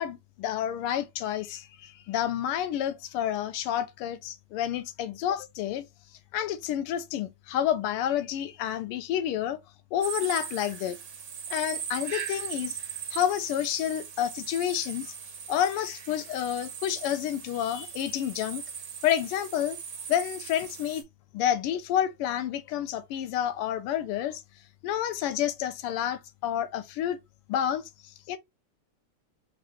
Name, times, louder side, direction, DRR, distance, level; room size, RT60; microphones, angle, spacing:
voice 1, 0.0-5.9 6.3-9.6 9.9-11.0 11.5-12.8 13.1-15.1 15.5-18.6 19.0-19.8 20.1-21.0 21.3-24.4 24.8-27.2 27.5-28.4, left 10 dB, 85° left, 1.5 m, -29 dB
sound 1, 10.0-21.0, right 8 dB, 55° right, 0.9 m, -39 dB
4.9 x 2.4 x 2.8 m
omnidirectional pair, 2.4 m